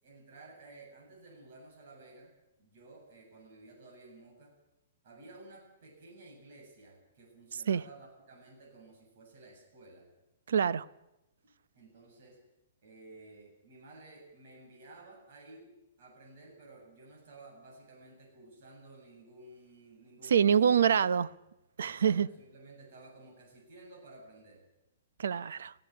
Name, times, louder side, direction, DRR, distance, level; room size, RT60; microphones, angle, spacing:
voice 1, 0.0-2.3 2.6-4.6 5.0-10.1 11.4-12.4 12.8-20.7 21.9-24.6, right 2 dB, 50° right, 7.9 m, -54 dB
voice 2, 10.5-10.8 20.3-21.3 21.8-22.3 25.2-25.7, right 8 dB, 80° right, 0.7 m, -25 dB
16.5 x 16.5 x 9.6 m
hypercardioid pair, 165°, 0 cm